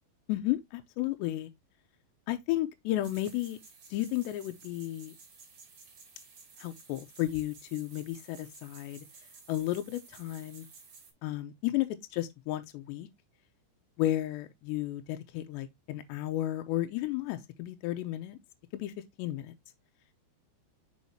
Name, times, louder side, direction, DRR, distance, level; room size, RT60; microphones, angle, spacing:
voice 1, 0.3-1.5 2.3-3.6 3.9-5.1 6.6-9.0 9.5-10.7 11.2-11.9 12.1-13.1 14.0-18.4 18.7-18.9 19.2-19.5, left 15 dB, 85° left, 2.6 m, -33 dB
sound 1, 3.0-11.1, right 5 dB, 45° right, 2.6 m, -54 dB
6.4 x 5.4 x 3.0 m
omnidirectional pair, 5.6 m